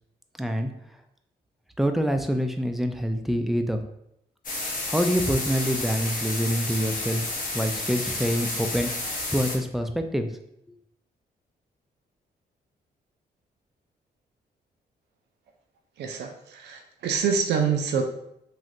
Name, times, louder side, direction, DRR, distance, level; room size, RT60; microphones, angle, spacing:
voice 1, 0.4-0.7 1.8-3.8 4.9-7.2 7.5-10.3, equal, ahead, 6 dB, 0.3 m, -26 dB
sound 1, 4.4-9.6, left 2 dB, 55° left, 0.8 m, -31 dB
voice 2, 16.0-18.0, right 6 dB, 80° right, 4 dB, 0.4 m, -26 dB
3.2 x 2.7 x 2.5 m, 0.77 s
cardioid pair, 75°, 17 cm